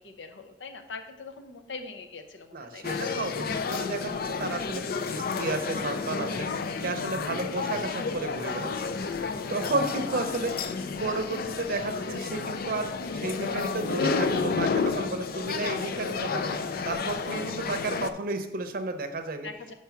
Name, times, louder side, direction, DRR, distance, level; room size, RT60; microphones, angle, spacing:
voice 1, 0.0-3.0 8.2-8.6 9.9-10.3 17.3-17.7 19.4-19.7, left 4 dB, 85° left, 6 dB, 0.7 m, -43 dB
voice 2, 2.5-6.5 6.8-8.7 9.5-10.6 11.0-16.5 16.9-19.5, right 2 dB, 55° right, 7 dB, 0.7 m, -32 dB
sound 1, 2.8-18.1, left 4 dB, 55° left, 0.4 m, -31 dB
5.8 x 4.6 x 5.7 m, 0.92 s
head